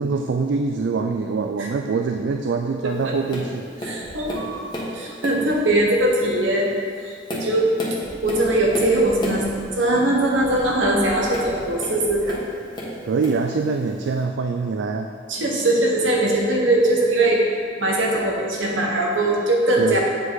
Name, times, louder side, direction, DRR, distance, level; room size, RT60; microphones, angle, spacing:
voice 1, 0.0-3.7 13.1-15.1 19.8-20.0, right 4 dB, 65° right, 4 dB, 0.4 m, -24 dB
Tap, 3.3-3.5 3.8-4.9 5.2-5.6 6.2-6.4 6.9-9.5 11.3-12.5 12.7-13.5 14.2-14.3, equal, 25° left, 1.3 m, -31 dB
voice 2, 3.8-4.7 4.9-6.7 7.0-7.7 8.2-9.4 9.8-12.4 15.3-17.4 17.8-20.0, right 1 dB, 85° right, -1 dB, 1.2 m, -21 dB
sound 1, 4.0-4.7 5.5-5.7 6.5-6.7 7.5-7.7 8.0-9.7 10.4-11.7 12.0-12.3, equal, 5° left, 1.5 m, -43 dB
8.0 x 5.0 x 4.0 m, 2.2 s
head